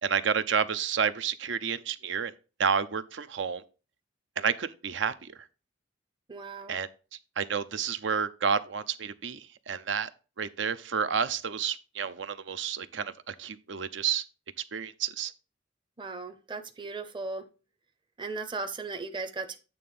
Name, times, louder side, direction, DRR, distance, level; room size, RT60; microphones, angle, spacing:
voice 1, 0.0-2.3 2.6-3.6 4.4-5.3 6.7-6.9 7.4-10.1 10.4-14.2 14.7-15.3, right 6 dB, 70° right, 0.6 m, -30 dB
voice 2, 6.3-6.8 16.0-17.5 18.2-19.6, right 3 dB, 25° right, 0.7 m, -37 dB
8.6 x 3.4 x 5.5 m
head